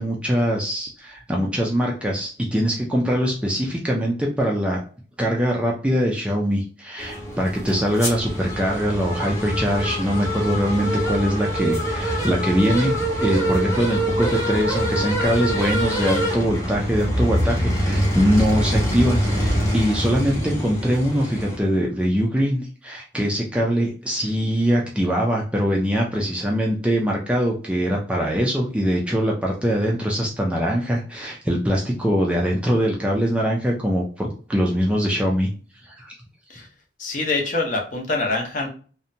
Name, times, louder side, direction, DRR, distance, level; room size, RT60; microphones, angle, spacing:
voice 1, 0.0-4.8 5.2-35.5 35.8-36.1, equal, 5° right, -1 dB, 0.3 m, -22 dB
sound 1, 7.0-21.6, equal, 15° left, 0.8 m, -24 dB
voice 2, 37.0-38.7, left 3 dB, 45° left, 1 dB, 0.6 m, -25 dB
2.7 x 2.1 x 2.5 m, 0.40 s
head